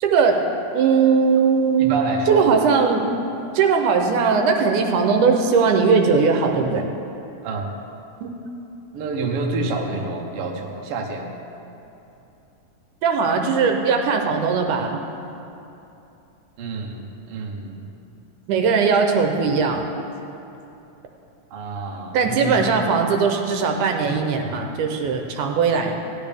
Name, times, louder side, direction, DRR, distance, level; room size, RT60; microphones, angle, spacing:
voice 1, 0.0-0.4 0.7-2.0 2.3-3.1 3.5-6.9 8.2-8.3 13.0-15.0 18.5-19.8 22.1-25.9, right 5 dB, 80° right, 3 dB, 2.3 m, -19 dB
voice 2, 1.8-2.6 7.4-7.7 8.9-11.3 16.6-17.9 21.5-22.6, right 3 dB, 60° right, 1 dB, 1.6 m, -28 dB
17.0 x 10.5 x 3.5 m, 2.8 s
omnidirectional pair, 3.6 m